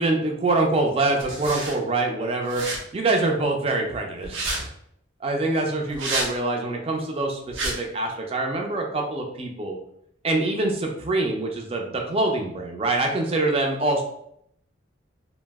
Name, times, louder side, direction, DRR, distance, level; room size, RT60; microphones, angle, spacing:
voice 1, 0.0-2.6 2.9-4.7 5.2-9.8 10.2-14.0, right 2 dB, 30° right, 2 dB, 0.4 m, -25 dB
sound 1, 1.2-1.7 2.5-2.8 4.2-4.6 5.9-6.3 7.5-7.7, right 2 dB, 80° right, 0.7 m, -28 dB
2.7 x 2.0 x 3.3 m, 0.73 s
head